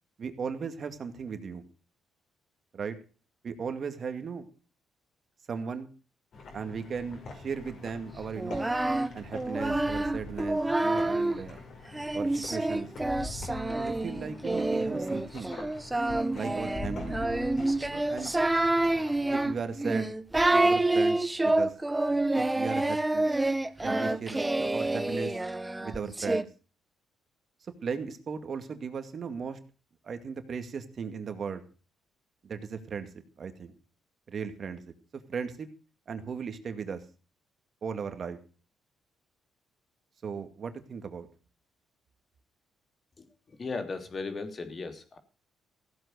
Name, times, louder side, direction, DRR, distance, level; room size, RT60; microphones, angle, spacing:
voice 1, 0.2-1.6 2.7-3.0 3.4-4.4 5.5-5.9 6.5-8.7 9.1-11.6 12.1-12.9 13.8-15.5 16.3-17.2 17.9-18.4 19.3-20.1 20.5-21.7 22.3-23.3 23.8-25.3 25.8-26.5 27.8-29.6 30.0-31.6 32.4-33.1 33.4-33.7 34.3-34.9 35.3-35.7 36.1-37.0 37.8-38.4 40.2-41.3, right 6 dB, 50° right, 8 dB, 2.2 m, -37 dB
sound 1, 6.3-19.6, left 3 dB, 55° left, 5.4 m, -44 dB
Singing, 8.4-11.4 11.9-26.4, right 2 dB, 15° right, 0.9 m, -28 dB
voice 2, 43.2-45.2, left 4 dB, 35° left, 7 dB, 3.1 m, -37 dB
15.5 x 7.8 x 6.6 m, 0.37 s
cardioid pair, 90°, 0 cm